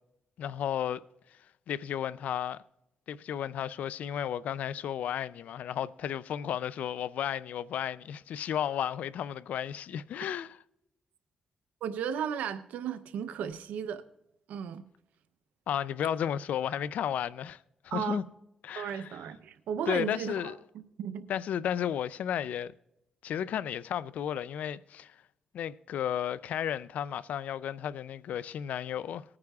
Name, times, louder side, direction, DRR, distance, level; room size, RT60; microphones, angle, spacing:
voice 1, 0.4-1.0 1.7-2.6 3.1-10.6 15.7-17.6 17.8-18.2 18.6-19.2 19.9-20.6 21.3-22.7 23.2-25.2 25.5-29.2, left 9 dB, 80° left, 0.4 m, -33 dB
voice 2, 11.8-14.0 14.5-14.8 17.9-18.2 18.8-21.3, right 8 dB, 90° right, 0.7 m, -35 dB
19.5 x 9.6 x 2.3 m
cardioid pair, 65°, 2 cm